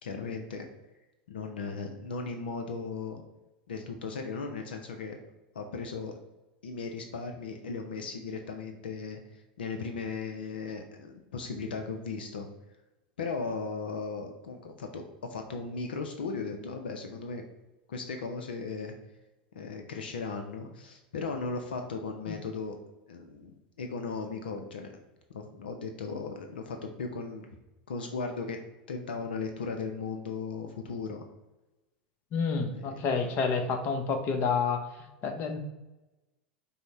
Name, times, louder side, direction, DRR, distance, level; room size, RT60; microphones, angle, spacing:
voice 1, 0.0-0.7 1.3-3.2 3.7-5.2 5.5-6.1 6.6-12.5 13.2-17.4 17.9-18.9 19.5-22.8 23.1-24.9 25.3-27.5 27.9-28.6 28.9-31.2 32.7-33.3, left 4 dB, 80° left, 4 dB, 0.5 m, -37 dB
voice 2, 32.3-34.8 35.2-35.6, left 5 dB, 45° left, 5 dB, 0.7 m, -29 dB
5.4 x 2.1 x 4.0 m, 1.0 s
hypercardioid pair, 95°, 5 cm